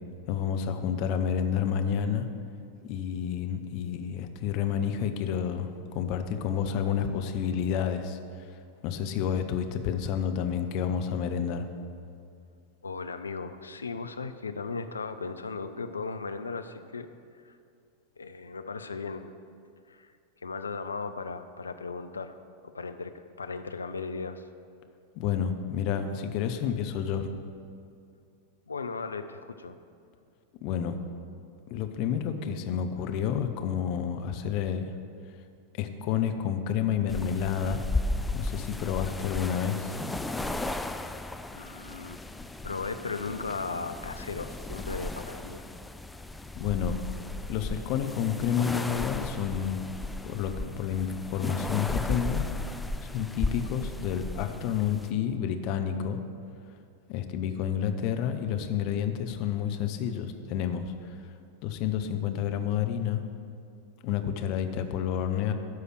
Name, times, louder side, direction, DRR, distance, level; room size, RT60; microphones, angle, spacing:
voice 1, 0.3-2.3 2.9-8.5 8.8-11.7 25.1-27.3 30.6-31.0 31.7-34.9 35.8-37.8 38.3-39.9 46.6-47.0 47.5-49.8 50.2-52.4 53.0-56.2 57.1-60.9 61.6-63.2 64.0-65.5, left 8 dB, 45° left, 7 dB, 0.8 m, -29 dB
voice 2, 12.8-17.1 17.4-17.6 18.2-19.3 19.9-20.1 20.4-22.4 22.6-24.5 28.7-29.8 41.5-42.2 42.6-45.6, left 4 dB, 75° left, 9 dB, 0.5 m, -36 dB
sound 1, 37.1-55.1, left 2 dB, 5° left, 0.4 m, -35 dB
13.0 x 4.9 x 6.2 m, 2.4 s
figure-of-eight pair, 90°, 0 cm